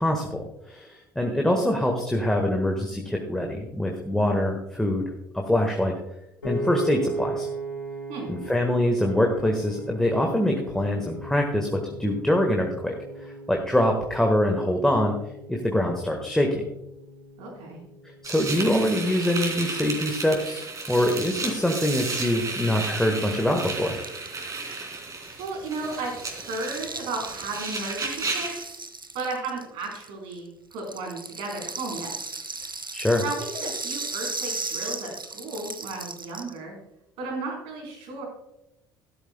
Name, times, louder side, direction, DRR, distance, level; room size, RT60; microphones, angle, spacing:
voice 1, 0.0-5.9 6.4-7.5 8.3-15.2 15.5-16.7 18.2-24.0 32.9-33.2, left 1 dB, 5° left, 1 dB, 1.6 m, -24 dB
Piano, 6.4-18.7, right 2 dB, 85° left, 2.2 m, -37 dB
voice 2, 17.4-17.8 25.4-28.8 29.1-32.3 33.2-36.8 37.2-38.2, right 3 dB, 60° right, 0 dB, 4.3 m, -34 dB
sound 1, 18.2-28.6, right 3 dB, 30° right, 3.1 m, -33 dB
Rattle (instrument), 23.3-30.4 30.7-36.6, right 3 dB, 90° right, 0.5 m, -36 dB
13.5 x 12.5 x 2.3 m, 0.85 s
figure-of-eight pair, 60°, 11 cm